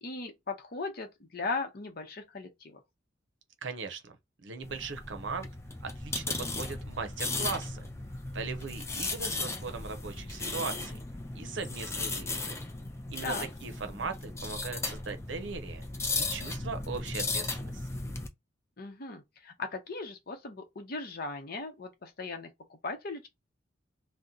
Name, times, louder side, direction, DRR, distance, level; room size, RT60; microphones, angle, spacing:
voice 1, 0.0-2.8 13.2-13.5 18.8-23.3, left 3 dB, 50° left, 0.7 m, -38 dB
voice 2, 3.6-4.2 4.4-5.5 5.8-7.8 8.3-11.0 11.3-12.5 13.1-13.3 13.6-15.8 16.2-17.8, right 4 dB, 70° right, 0.6 m, -39 dB
sound 1, 4.6-18.3, left 3 dB, 15° left, 0.5 m, -36 dB
2.8 x 2.1 x 3.6 m
head